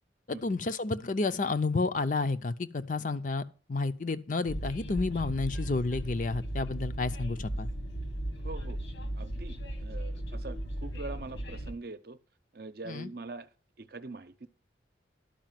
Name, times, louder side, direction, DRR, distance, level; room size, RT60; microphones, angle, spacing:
voice 1, 0.3-3.4 3.7-7.7 12.9-13.1, left 3 dB, 45° left, 0.5 m, -30 dB
Train, 4.5-11.7, right 1 dB, 85° left, 1.6 m, -36 dB
voice 2, 8.4-8.8 9.2-12.2 12.5-13.5 13.8-14.5, right 3 dB, 55° right, 0.7 m, -43 dB
11.5 x 4.9 x 7.5 m
head